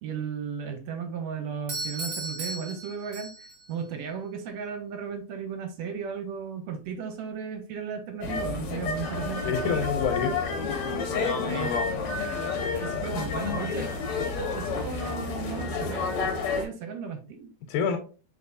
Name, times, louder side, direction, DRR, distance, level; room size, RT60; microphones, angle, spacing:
voice 1, 0.0-9.6 11.4-11.8 12.8-14.0 14.5-17.5, right 6 dB, 75° right, 6 dB, 1.7 m, -35 dB
Doorbell, 1.7-3.7, right 2 dB, 60° right, 1.2 m, -36 dB
sound 1, 8.2-16.6, left 4 dB, 65° left, 1.5 m, -30 dB
voice 2, 9.5-10.4 12.6-13.1 17.7-18.0, left 6 dB, 90° left, 4 dB, 2.1 m, -27 dB
4.2 x 3.9 x 2.6 m, 0.37 s
omnidirectional pair, 3.4 m